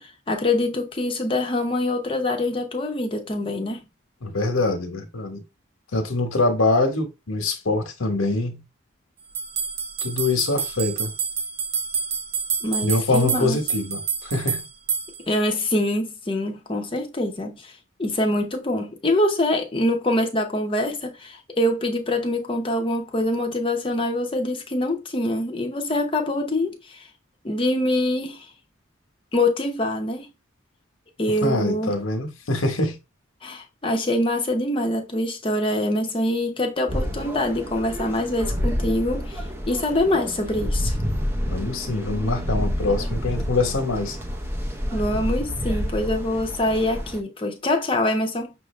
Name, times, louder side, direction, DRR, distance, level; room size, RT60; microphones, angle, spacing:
voice 1, 0.0-3.9 12.6-13.6 15.3-17.7 18.0-27.0 27.4-28.5 29.3-30.3 31.2-32.0 33.4-41.0 44.9-48.5, left 1 dB, 25° left, 0.8 m, -24 dB
voice 2, 4.2-5.4 5.9-8.6 10.0-11.1 12.8-14.6 31.4-33.0 41.5-44.2, left 2 dB, 85° left, 1.1 m, -24 dB
sound 1, 9.3-15.4, right 6 dB, 50° right, 0.6 m, -28 dB
sound 2, 36.9-47.2, equal, 10° right, 0.6 m, -28 dB
6.0 x 2.6 x 3.1 m
head